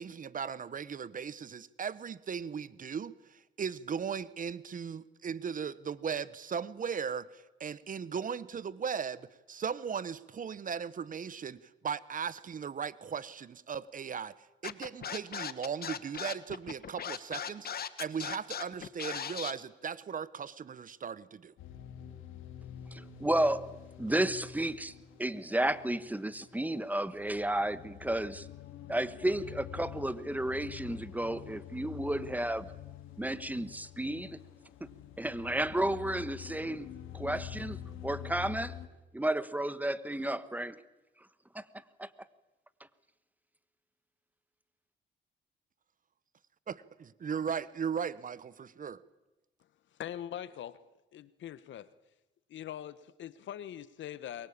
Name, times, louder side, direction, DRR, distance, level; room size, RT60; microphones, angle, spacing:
voice 1, 0.0-14.3 14.6-21.5 47.2-49.0, right 7 dB, 40° right, 18 dB, 1.0 m, -37 dB
Scratching (performance technique), 14.6-19.5, left 8 dB, 50° left, 1.4 m, -38 dB
sound 1, 21.6-38.9, left 10 dB, 90° left, 2.7 m, -47 dB
voice 2, 22.9-24.9 25.2-28.5 28.9-32.7 33.2-34.4 34.8-34.9 35.2-36.9 37.1-38.8 39.1-40.8 41.5-41.6 42.0-42.1, right 1 dB, 10° right, 15 dB, 1.4 m, -32 dB
voice 3, 50.0-50.8 51.1-51.9 52.5-54.5, left 11 dB, 70° left, 16 dB, 1.3 m, -42 dB
23.0 x 22.5 x 8.7 m, 1.0 s
cardioid pair, 90°, 20 cm